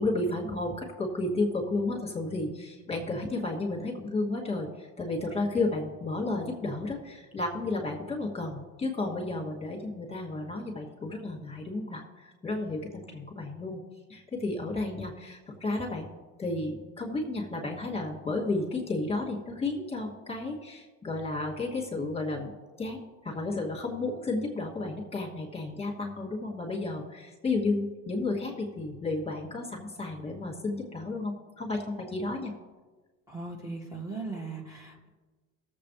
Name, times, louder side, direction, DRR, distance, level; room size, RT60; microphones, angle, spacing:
voice 1, 0.0-13.8 14.1-16.1 16.4-22.5 22.8-32.5, left 2 dB, 20° left, -2 dB, 2.8 m, -32 dB
voice 2, 33.3-35.1, right 3 dB, 10° right, -3 dB, 2.4 m, -38 dB
18.0 x 7.7 x 3.5 m, 1.3 s
supercardioid pair, 90°, 33 cm